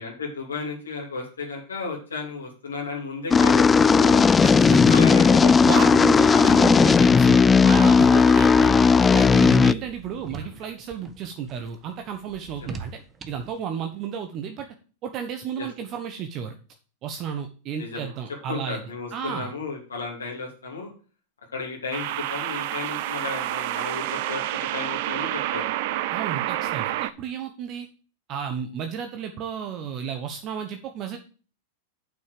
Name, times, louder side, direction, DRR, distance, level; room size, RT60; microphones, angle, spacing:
voice 1, 0.0-3.7 4.0-4.2 4.9-7.2 8.6-8.8 10.4-10.5 12.6-12.8 15.6-15.7 17.8-18.1 18.5-20.9 21.5-25.7, left 4 dB, 85° left, -2 dB, 2.9 m, -34 dB
sound 1, 3.3-9.7, left 5 dB, 20° left, 0.4 m, -16 dB
voice 2, 4.4-5.2 5.6-13.0 13.3-14.7 15.0-16.6 17.0-18.8 19.1-19.5 26.1-27.9 28.3-31.2, right 7 dB, 40° right, 6 dB, 1.2 m, -32 dB
sound 2, 8.5-13.6, right 5 dB, 25° right, 1.3 m, -43 dB
sound 3, 17.9-18.3 21.9-27.1, right 14 dB, 55° right, 0.7 m, -29 dB
7.7 x 5.9 x 6.7 m, 0.38 s
hypercardioid pair, 95°, 0 cm